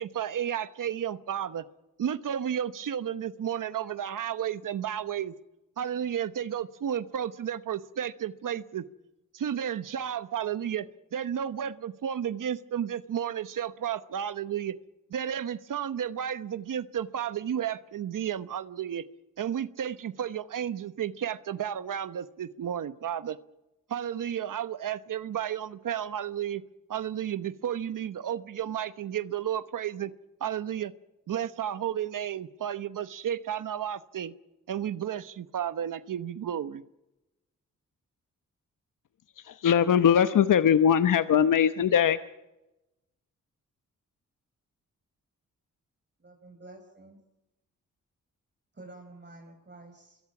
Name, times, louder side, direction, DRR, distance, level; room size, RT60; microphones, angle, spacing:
voice 1, 0.0-1.6 2.0-5.3 5.8-8.8 9.3-10.9 11.1-14.7 15.1-19.0 19.4-23.4 23.9-26.6 26.9-30.1 30.4-30.9 31.3-34.3 34.7-36.8, right 9 dB, 70° right, 1.0 m, -32 dB
voice 2, 39.4-42.2, left 8 dB, 70° left, 0.9 m, -21 dB
voice 3, 46.2-47.2 48.7-50.2, right 2 dB, 35° right, 5.2 m, -49 dB
25.5 x 22.5 x 6.0 m
cardioid pair, 55°, 33 cm